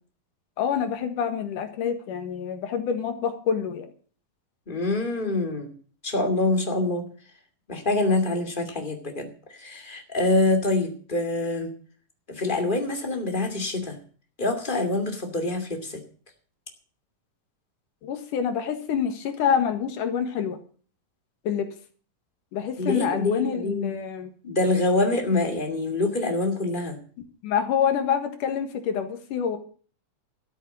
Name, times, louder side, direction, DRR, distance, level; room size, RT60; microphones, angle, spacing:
voice 1, 0.6-3.9 18.0-20.6 21.4-21.7 22.5-24.3 27.4-29.6, left 7 dB, 75° left, 8 dB, 3.1 m, -27 dB
voice 2, 4.7-5.7 6.0-7.1 7.7-11.7 12.3-14.0 14.4-16.0 22.8-23.9 24.4-27.0, left 2 dB, 15° left, 4 dB, 2.2 m, -25 dB
13.0 x 8.9 x 7.2 m, 0.43 s
omnidirectional pair, 3.8 m